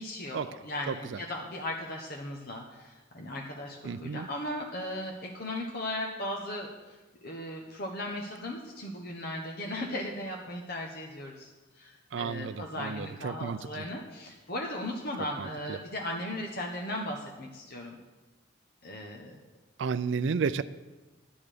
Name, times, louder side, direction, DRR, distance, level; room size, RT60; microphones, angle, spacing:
voice 1, 0.0-18.0 18.8-19.4, left 1 dB, 50° left, 0 dB, 1.1 m, -37 dB
voice 2, 0.9-1.2 3.8-4.3 12.1-13.9 15.4-15.8 19.8-20.6, right 5 dB, 60° right, 14 dB, 0.4 m, -32 dB
11.0 x 9.3 x 5.1 m, 1.2 s
head